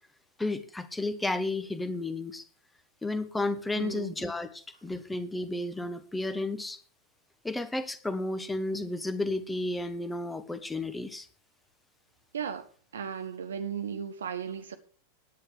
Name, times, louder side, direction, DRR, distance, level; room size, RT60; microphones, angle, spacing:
voice 1, 0.4-2.4 3.0-6.8 7.4-11.3, left 2 dB, 10° left, 1.4 m, -32 dB
voice 2, 3.7-4.2 12.3-12.7 12.9-14.8, right 7 dB, 65° right, 1.5 m, -35 dB
10.0 x 9.2 x 6.4 m
figure-of-eight pair, 90°, 0 cm